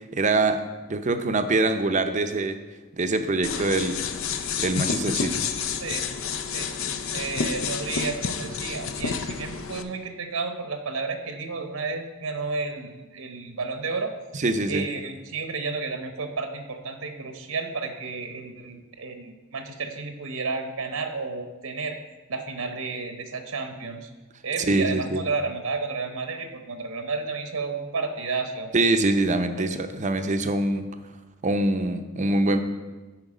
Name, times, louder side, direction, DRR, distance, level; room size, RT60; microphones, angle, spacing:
voice 1, 0.1-0.6 0.9-2.6 3.0-4.0 4.6-5.5 14.3-14.9 24.7-25.2 28.7-30.8 31.4-32.6, right 2 dB, 35° right, 8 dB, 0.6 m, -24 dB
sound 1, 3.4-9.8, left 6 dB, 65° left, 0.6 m, -29 dB
voice 2, 7.1-14.1 14.7-22.0 22.3-24.1 24.4-28.7 29.6-29.7, right 4 dB, 75° right, 6 dB, 0.9 m, -32 dB
11.5 x 4.5 x 5.0 m, 1.2 s
head